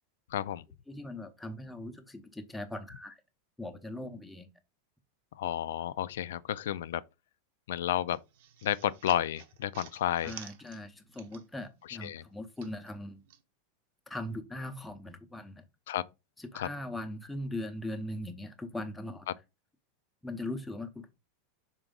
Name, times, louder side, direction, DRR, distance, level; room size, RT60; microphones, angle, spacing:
voice 1, 0.3-0.6 5.4-7.0 7.7-8.2 8.6-10.3 11.9-12.2 15.9-16.0 16.5-16.7, left 11 dB, 85° left, 0.4 m, -31 dB
voice 2, 0.9-3.2 3.6-4.5 10.2-13.2 14.1-15.6 16.4-19.3 20.2-21.1, left 1 dB, 5° left, 0.7 m, -40 dB
sound 1, 8.1-11.7 12.0-13.4, right 9 dB, 55° right, 0.8 m, -51 dB
6.0 x 4.4 x 3.8 m
supercardioid pair, 170°, 0 cm